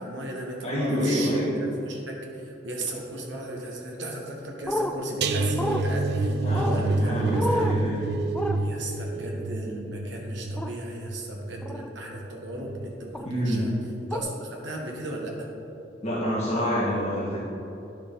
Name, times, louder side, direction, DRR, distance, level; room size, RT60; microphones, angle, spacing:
voice 1, 0.0-1.3 1.6-7.7 8.6-13.7 14.1-15.5, right 1 dB, 80° right, 0 dB, 1.5 m, -36 dB
voice 2, 0.6-1.5 6.4-8.0 13.2-13.6 16.0-17.4, equal, 35° left, -9 dB, 1.8 m, -27 dB
sound 1, 4.6-4.9 5.6-5.8 6.5-6.8 7.3-7.8 8.3-8.6 10.6-10.7 11.6-11.9 13.1-13.3 14.1-14.2, left 1 dB, 5° left, 0.3 m, -29 dB
sound 2, 5.2-12.3 12.6-12.9 13.3-13.4, right 3 dB, 60° right, 0.5 m, -28 dB
10.5 x 6.4 x 4.0 m, 2.9 s
head